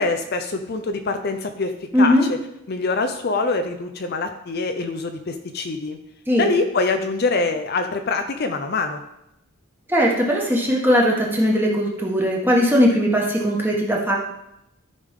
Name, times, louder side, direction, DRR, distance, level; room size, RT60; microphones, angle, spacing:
voice 1, 0.0-1.7 2.0-2.4 2.7-6.0 6.4-9.0, left 3 dB, 45° left, 6 dB, 0.5 m, -24 dB
voice 2, 1.9-2.2 6.3-6.5 9.9-14.2, equal, 10° right, -2 dB, 1.4 m, -19 dB
13.0 x 5.3 x 3.7 m, 0.85 s
head